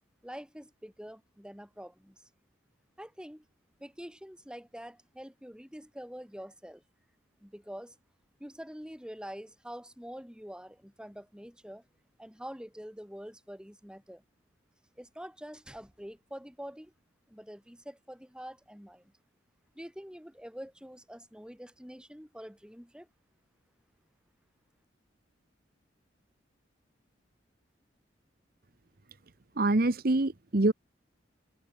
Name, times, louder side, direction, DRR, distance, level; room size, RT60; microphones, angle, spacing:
voice 1, 0.2-2.3 3.0-3.4 3.8-6.8 7.4-7.9 8.4-11.8 12.2-14.2 15.0-16.9 17.3-19.1 19.7-23.1, equal, 5° right, 3.3 m, -46 dB
voice 2, 29.6-30.7, right 2 dB, 50° right, 1.0 m, -25 dB
head